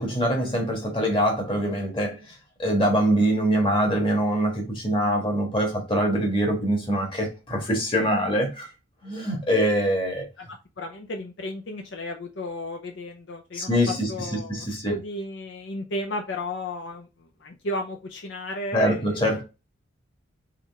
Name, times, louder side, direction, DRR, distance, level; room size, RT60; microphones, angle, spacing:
voice 1, 0.0-2.2 2.6-8.7 9.0-10.3 13.5-14.1 14.5-14.9 18.7-19.4, equal, 25° left, 1.4 m, -24 dB
voice 2, 10.4-13.8 14.1-17.1 17.4-19.1, left 1 dB, 65° left, 0.6 m, -34 dB
3.8 x 3.1 x 3.5 m
head